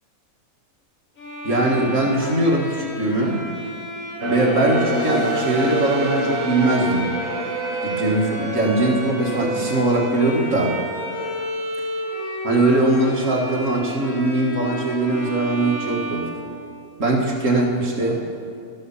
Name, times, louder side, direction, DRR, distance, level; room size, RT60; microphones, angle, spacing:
Bowed string instrument, 1.2-17.0, equal, 65° left, 3.5 m, -31 dB
voice 1, 1.4-3.5 4.3-7.1 7.8-10.7 12.4-16.3 17.0-18.2, right 2 dB, 60° right, -1 dB, 2.1 m, -21 dB
dark athmosphere fbone, 4.2-11.4, right 1 dB, 85° right, 1.9 m, -29 dB
13.0 x 12.0 x 5.6 m, 2.4 s
omnidirectional pair, 1.5 m